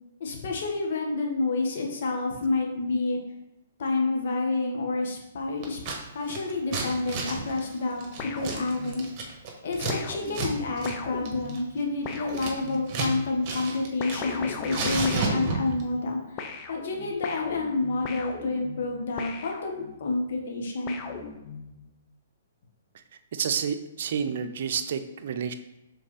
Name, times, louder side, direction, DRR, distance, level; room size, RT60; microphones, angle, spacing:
voice 1, 0.2-3.2 3.8-5.8 6.1-9.1 9.6-21.0, left 3 dB, 65° left, 1 dB, 1.5 m, -29 dB
Scissors, 5.6-6.0 6.2-10.0 10.3-10.5 10.8-10.9 11.3-13.1 13.4-14.4 14.7-15.8, right 4 dB, 35° right, 1.5 m, -32 dB
sound 1, 8.2-9.2 9.9-13.0 14.0-16.1 16.4-20.1 20.9-21.9, left 5 dB, 35° left, 0.7 m, -38 dB
voice 2, 23.3-25.5, right 7 dB, 60° right, 8 dB, 0.6 m, -29 dB
5.3 x 3.8 x 4.8 m, 0.91 s
hypercardioid pair, 130°, 0 cm